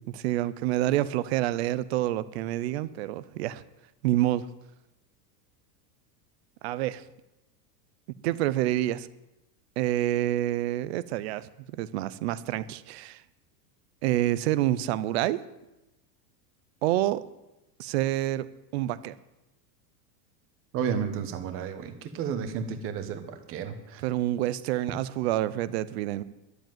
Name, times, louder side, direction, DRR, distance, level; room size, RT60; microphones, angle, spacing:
voice 1, 0.1-3.6 4.0-4.5 6.6-7.0 8.2-9.1 9.8-11.5 11.8-13.2 14.0-15.4 16.8-17.2 17.8-18.5 18.7-19.1 24.0-26.2, right 14 dB, 40° right, 16 dB, 0.5 m, -27 dB
voice 2, 20.7-24.0, right 7 dB, 25° right, 8 dB, 1.1 m, -32 dB
11.5 x 7.8 x 9.1 m, 0.95 s
supercardioid pair, 175°, 50 cm